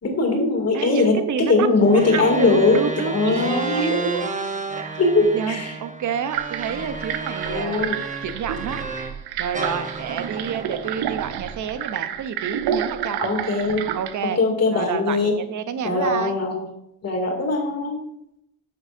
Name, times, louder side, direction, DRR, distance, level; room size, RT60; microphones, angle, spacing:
voice 1, 0.0-4.1 5.0-5.7 7.5-8.0 13.2-13.9 14.4-15.3 15.8-16.6 17.0-18.0, left 3 dB, 40° left, 1 dB, 2.5 m, -20 dB
voice 2, 0.7-1.7 2.1-4.2 4.7-5.0 5.3-7.9 8.2-8.8 9.4-13.2 13.9-14.4 14.7-16.4, right 7 dB, 55° right, 11 dB, 0.8 m, -29 dB
sound 1, 1.8-9.2 9.5-11.9, right 4 dB, 20° right, 0.8 m, -32 dB
sound 2, 6.3-14.1, right 9 dB, 90° right, 0.6 m, -30 dB
10.0 x 6.4 x 2.6 m, 0.79 s
cardioid pair, 90°, 37 cm